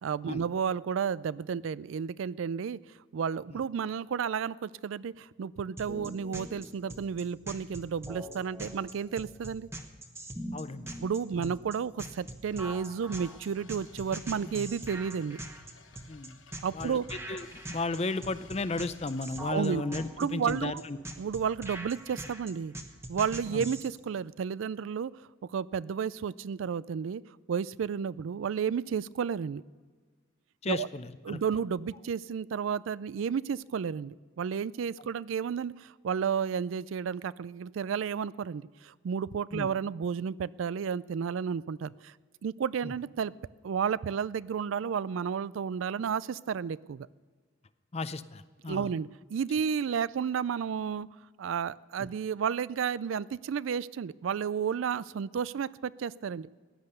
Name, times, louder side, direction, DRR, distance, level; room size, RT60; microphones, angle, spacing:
voice 1, 0.0-2.8 3.1-9.7 11.0-15.4 16.6-17.2 19.4-19.8 20.2-20.8 21.2-22.7 23.1-27.2 27.5-29.6 30.7-30.9 31.2-42.1 42.4-43.3 43.6-47.1 48.7-51.1 51.4-56.5, right 7 dB, 80° right, 20 dB, 0.4 m, -32 dB
sound 1, 5.8-23.9, right 1 dB, 15° right, 1.1 m, -42 dB
voice 2, 10.5-10.9 11.4-11.5 16.1-16.4 16.7-17.0 17.3-21.0 23.5-23.6 30.6-31.4 39.5-39.7 42.8-42.9 47.9-48.9, left 3 dB, 30° left, 14 dB, 0.5 m, -34 dB
sound 2, 12.4-19.6, left 5 dB, 75° left, 1.0 m, -57 dB
16.5 x 10.5 x 6.7 m, 1.5 s
head